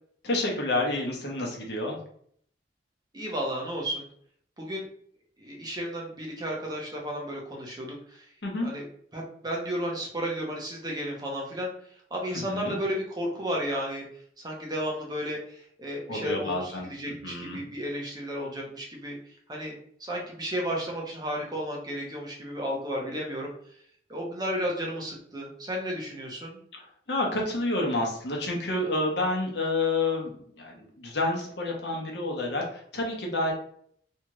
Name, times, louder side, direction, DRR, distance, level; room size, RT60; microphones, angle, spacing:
voice 1, 0.2-2.0 8.4-8.7 12.3-12.8 16.1-16.9 17.2-17.6 26.7-26.8 27.1-33.5, left 2 dB, 65° left, -1 dB, 0.8 m, -29 dB
voice 2, 3.1-4.1 4.6-4.9 5.4-8.2 8.6-8.8 9.1-11.7 12.1-14.1 14.4-19.2 19.5-19.7 20.0-23.5 24.1-26.6, equal, 20° right, -2 dB, 0.7 m, -33 dB
2.8 x 2.3 x 2.9 m, 0.62 s
head